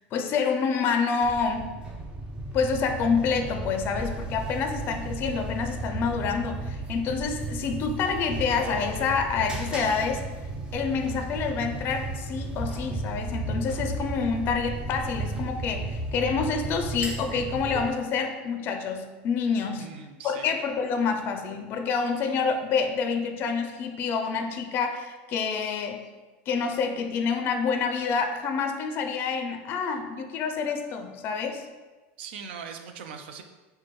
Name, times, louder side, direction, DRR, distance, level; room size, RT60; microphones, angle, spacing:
voice 1, 0.1-1.8 2.5-10.2 10.7-19.9 20.2-26.0 26.5-31.7, left 5 dB, 35° left, 6 dB, 0.4 m, -27 dB
sound 1, 1.2-17.9, right 2 dB, 15° right, 0.5 m, -34 dB
voice 2, 19.7-20.5 32.2-33.4, right 6 dB, 80° right, 6 dB, 0.5 m, -40 dB
5.8 x 2.2 x 3.0 m, 1.2 s
supercardioid pair, 140°, 6 cm